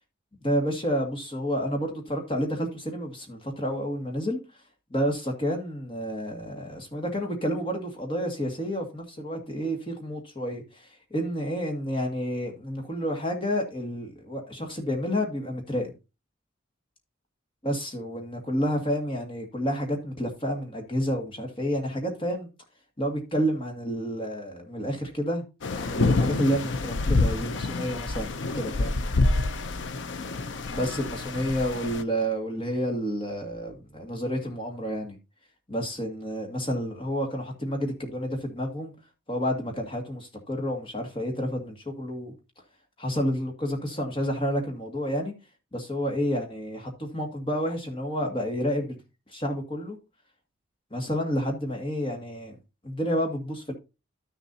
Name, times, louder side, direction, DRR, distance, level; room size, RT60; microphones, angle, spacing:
voice 1, 0.4-4.4 4.9-15.9 17.6-22.5 23.0-25.4 25.8-29.0 30.7-35.2 35.7-38.9 39.3-42.3 43.0-45.3 45.7-49.0 49.3-50.0 50.9-52.6 52.8-53.7, equal, 25° left, 2.0 m, -30 dB
sound 1, 25.6-32.0, left 3 dB, 60° left, 0.6 m, -27 dB
12.0 x 6.8 x 2.7 m
head